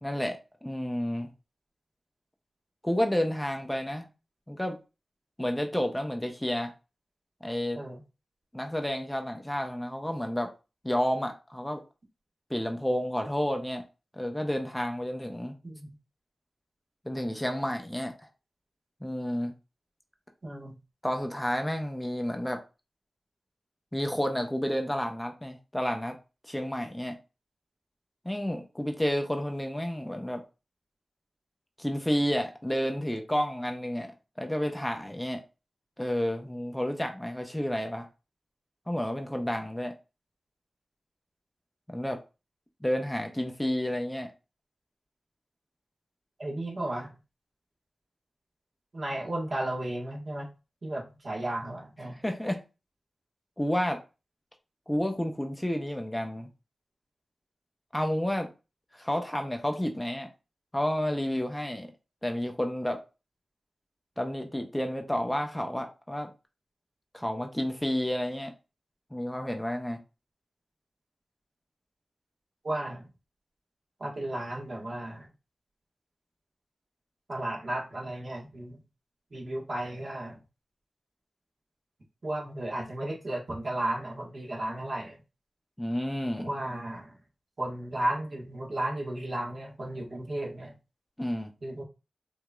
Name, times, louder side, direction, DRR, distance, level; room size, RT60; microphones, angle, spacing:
voice 1, 0.0-1.3 2.8-4.1 4.5-4.8 5.4-6.7 7.4-7.8 8.5-10.5 10.8-11.8 12.5-13.8 14.1-15.5 17.0-18.1 19.0-19.5 21.0-22.6 23.9-26.2 26.4-27.2 28.2-30.4 31.8-35.4 36.0-38.1 38.9-39.9 41.9-42.2 42.8-44.3 52.1-52.6 53.6-54.0 54.9-56.5 57.9-58.5 58.9-60.3 60.7-61.9 62.2-63.0 64.2-66.3 67.1-68.5 69.1-70.0 85.8-86.5 91.2-91.5, equal, 10° left, 0.7 m, -30 dB
voice 2, 15.6-15.9 20.4-20.8 46.4-47.1 48.9-50.5 50.8-52.1 72.6-73.1 74.0-75.3 77.3-78.8 79.3-80.4 82.2-85.2 86.4-87.1 87.6-90.7 91.6-91.8, right 1 dB, 55° right, 1.4 m, -34 dB
4.7 x 2.8 x 2.3 m
cardioid pair, 45°, 0 cm